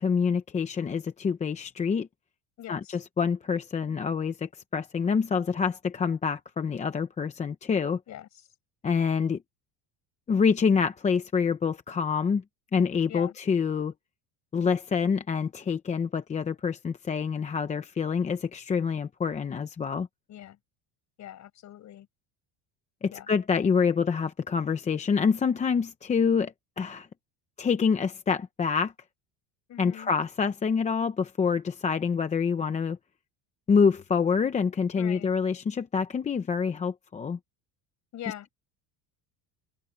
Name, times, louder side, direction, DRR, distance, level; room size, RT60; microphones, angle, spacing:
voice 1, 0.0-2.1 2.7-8.0 8.8-9.4 10.3-12.4 12.7-13.9 14.5-20.1 23.0-27.1 27.6-28.9 29.8-33.0 33.7-37.4, left 6 dB, 15° left, 0.7 m, -26 dB
voice 2, 2.6-3.0 8.1-8.3 13.1-13.3 20.3-20.6 21.2-22.1 23.1-23.3 29.7-30.1 35.0-35.3 38.1-38.5, left 12 dB, 40° left, 6.8 m, -42 dB
cardioid pair, 170°, 45 cm